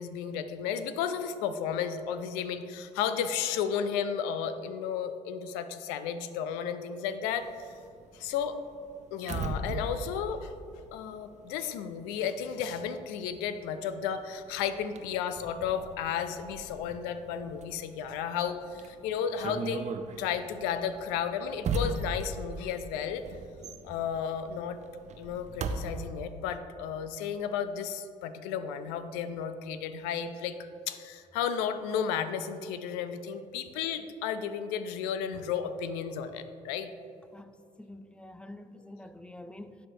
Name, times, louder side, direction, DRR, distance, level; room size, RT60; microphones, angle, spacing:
voice 1, 0.0-7.8 8.1-8.6 9.1-10.5 10.9-19.8 20.2-23.2 23.8-24.8 25.2-30.6 30.9-36.9, left 7 dB, 80° left, 0.4 m, -33 dB
sound 1, 7.2-11.6 11.9-25.8, right 3 dB, 45° right, 0.6 m, -39 dB
voice 2, 37.3-39.9, left 1 dB, 5° left, 0.4 m, -47 dB
12.0 x 4.5 x 2.7 m
hypercardioid pair, 55°, 16 cm